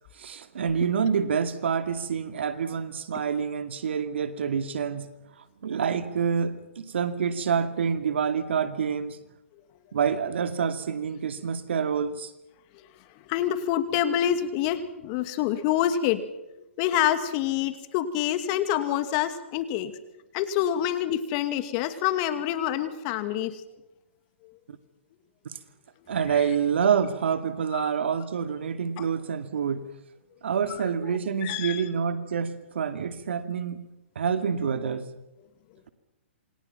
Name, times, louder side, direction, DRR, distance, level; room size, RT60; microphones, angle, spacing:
voice 1, 0.2-5.1 5.6-9.2 9.9-12.3 26.1-29.8 30.4-33.8 34.2-35.1, right 7 dB, 65° right, 2.4 m, -27 dB
voice 2, 13.3-16.2 16.8-19.9 20.3-23.6 24.4-24.5 26.3-26.4 27.7-27.9 29.0-29.1 30.7-31.9, left 11 dB, 35° left, 2.4 m, -27 dB
27.5 x 27.0 x 5.9 m
hypercardioid pair, 130°, 7 cm